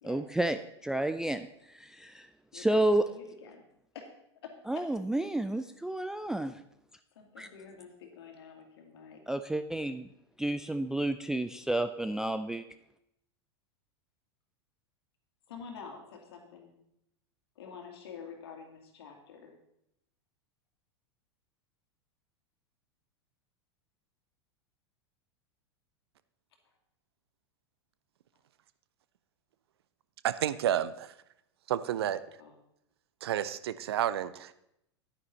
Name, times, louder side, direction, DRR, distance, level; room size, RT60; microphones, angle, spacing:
voice 1, 0.0-2.3 2.5-3.0 4.7-6.6 7.4-7.5 9.3-10.1 10.4-12.6, right 1 dB, 5° right, 9 dB, 0.3 m, -31 dB
voice 2, 2.5-3.6 3.9-4.1 4.4-4.9 5.4-5.6 7.1-9.2 15.5-16.8 17.6-19.6 32.0-32.6, left 6 dB, 60° left, 3 dB, 2.1 m, -48 dB
voice 3, 30.2-31.1 31.7-32.2 33.2-34.5, right 11 dB, 60° right, 15 dB, 0.5 m, -30 dB
10.0 x 9.6 x 4.1 m, 0.80 s
figure-of-eight pair, 90°, 15 cm